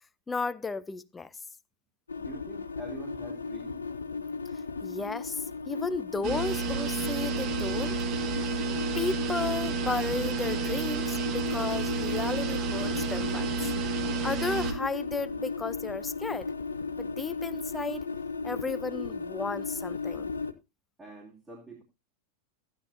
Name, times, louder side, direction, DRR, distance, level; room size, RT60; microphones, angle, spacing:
voice 1, 0.3-1.3 4.8-5.4 5.7-8.0 9.0-13.7 14.2-16.5 17.0-18.1 18.4-20.3, left 4 dB, 15° left, 0.5 m, -34 dB
sound 1, 2.1-20.5, left 4 dB, 75° left, 0.7 m, -36 dB
voice 2, 2.2-3.8 21.0-21.8, right 1 dB, 15° right, 2.7 m, -45 dB
sound 2, 6.2-14.7, right 5 dB, 35° right, 1.4 m, -31 dB
14.5 x 9.5 x 2.7 m
figure-of-eight pair, 90°, 0 cm